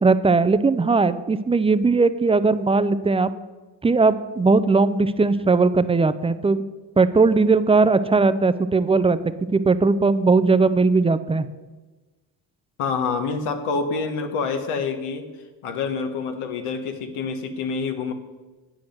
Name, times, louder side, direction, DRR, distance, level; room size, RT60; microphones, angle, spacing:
voice 1, 0.0-3.3 3.8-6.6 7.0-9.2 9.5-11.5, right 4 dB, 15° right, 13 dB, 0.3 m, -18 dB
voice 2, 12.8-15.3 15.6-18.1, left 5 dB, 80° left, 7 dB, 1.1 m, -27 dB
8.2 x 6.3 x 6.4 m, 1.2 s
supercardioid pair, 60°, 49 cm